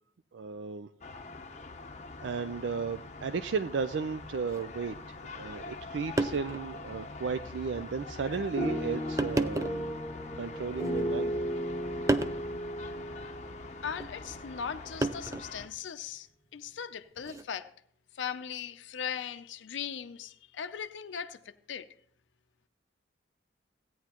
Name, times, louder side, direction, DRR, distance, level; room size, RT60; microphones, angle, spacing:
voice 1, 0.3-0.9 2.2-4.9 5.3-10.0 10.4-11.3, right 5 dB, 80° right, 0.4 m, -34 dB
sound 1, 1.0-15.7, left 3 dB, 40° left, 0.7 m, -44 dB
sound 2, 4.5-4.6 5.7-5.8 6.2-6.7 7.2-7.3 8.2-8.4 9.2-9.9 10.7-11.4 12.1-12.4 14.0-14.2 15.0-15.6 17.2-17.5, right 2 dB, 15° right, 0.4 m, -32 dB
sound 3, 8.6-14.6, equal, 5° left, 1.5 m, -35 dB
voice 2, 13.8-16.3 16.5-17.7 18.1-21.4 21.7-21.9, left 7 dB, 90° left, 0.5 m, -38 dB
16.5 x 9.3 x 2.9 m
head